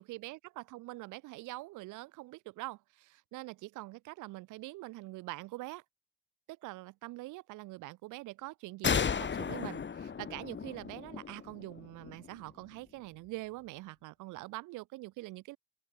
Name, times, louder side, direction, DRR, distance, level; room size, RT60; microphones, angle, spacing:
voice 1, 0.0-5.8 6.5-15.6, right 20 dB, 85° right, 2.7 m, -44 dB
sound 1, 8.8-12.4, left 6 dB, 40° left, 2.4 m, -34 dB
open air
supercardioid pair, 80°, 30 cm